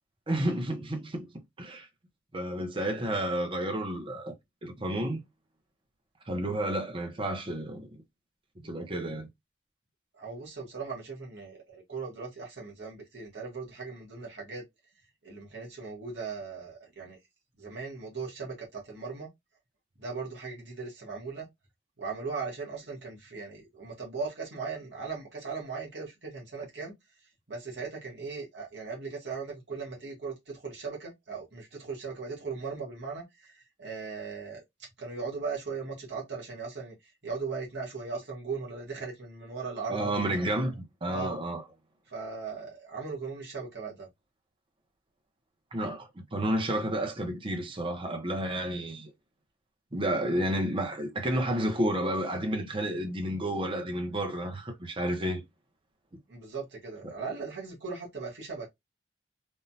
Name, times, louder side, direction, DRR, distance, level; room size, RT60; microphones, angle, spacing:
voice 1, 0.3-1.3 1.6-1.9 2.3-4.3 4.6-5.2 6.3-7.9 8.6-9.3 39.9-41.6 45.7-49.1 49.9-55.4, right 1 dB, 30° right, 0.9 m, -31 dB
voice 2, 10.1-14.6 15.2-17.2 17.6-19.3 20.0-21.5 22.0-26.9 27.5-34.6 35.0-36.9 37.2-40.4 41.1-41.4 42.1-44.1 56.3-58.7, right 4 dB, 75° right, 1.4 m, -38 dB
3.5 x 2.3 x 2.7 m
head